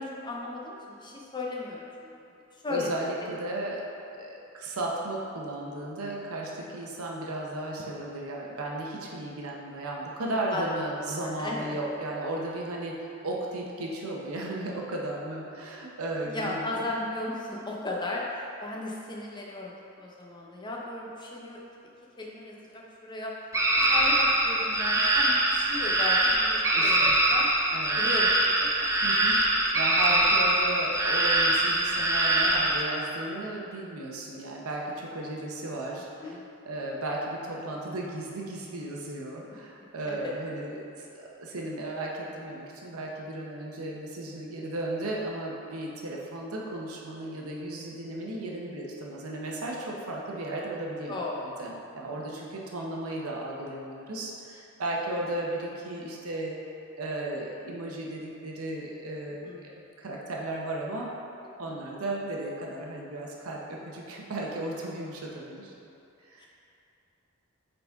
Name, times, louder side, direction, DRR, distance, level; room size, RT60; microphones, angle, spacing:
voice 1, 0.0-2.1 2.6-3.1 10.5-10.6 11.4-11.8 16.3-21.6 22.2-23.3 23.7-27.5 28.0-28.9 35.9-36.4 40.1-40.3 51.1-51.4 59.4-59.6 61.6-61.8 66.4-66.5, left 2 dB, 20° left, -3 dB, 0.7 m, -36 dB
voice 2, 2.7-3.8 4.2-16.8 26.7-27.1 27.7-28.0 29.0-29.4 29.7-36.3 36.7-51.3 51.6-56.6 57.0-59.7 60.0-61.1 61.6-65.7 66.2-66.5, right 1 dB, 80° right, -2 dB, 0.8 m, -35 dB
sound 1, 23.5-32.8, right 1 dB, 15° right, 0.4 m, -23 dB
8.1 x 4.0 x 3.5 m, 2.8 s
head